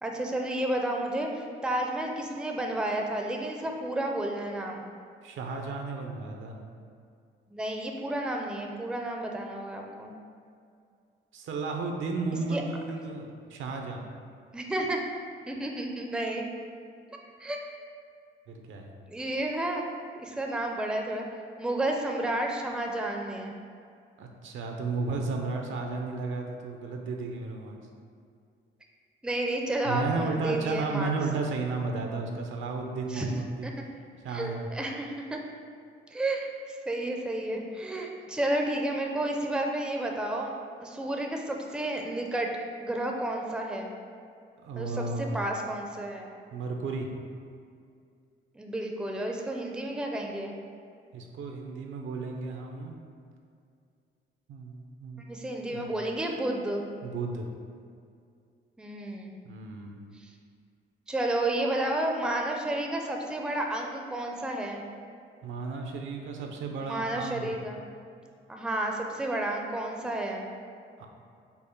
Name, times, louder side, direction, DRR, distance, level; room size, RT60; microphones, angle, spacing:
voice 1, 0.0-4.8 7.5-10.1 12.5-12.6 14.5-15.0 15.5-16.4 17.4-17.6 19.1-19.8 20.2-21.3 21.6-23.5 29.2-31.1 33.1-33.3 33.6-33.7 34.3-35.4 36.1-40.5 40.8-42.5 42.8-43.9 44.8-46.3 48.5-50.5 55.2-56.8 58.8-59.4 60.2-60.3 61.1-64.8 66.8-67.8 68.5-70.5, right 1 dB, 5° right, 1 dB, 0.5 m, -31 dB
voice 2, 5.2-6.6 11.3-14.0 18.5-18.9 24.2-27.8 29.8-33.7 34.2-34.7 44.6-45.3 46.5-47.1 51.1-52.9 54.5-55.2 55.7-55.9 57.0-57.5 59.4-60.0 65.4-67.5 71.0-71.1, right 3 dB, 75° right, 2 dB, 0.6 m, -33 dB
5.4 x 2.1 x 4.4 m, 2.3 s
cardioid pair, 90°, 20 cm